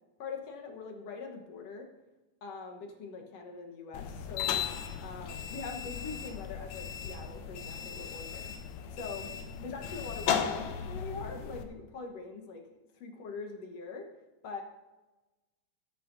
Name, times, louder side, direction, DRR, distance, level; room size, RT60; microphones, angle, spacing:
voice 1, 0.2-1.9 2.4-4.6 5.0-8.5 8.9-9.3 9.6-12.6 13.0-14.1 14.4-14.6, left 4 dB, 60° left, 2 dB, 2.2 m, -43 dB
sound 1, 3.9-11.6, left 8 dB, 80° left, 2.0 m, -36 dB
17.5 x 8.7 x 2.7 m, 1.1 s
omnidirectional pair, 3.4 m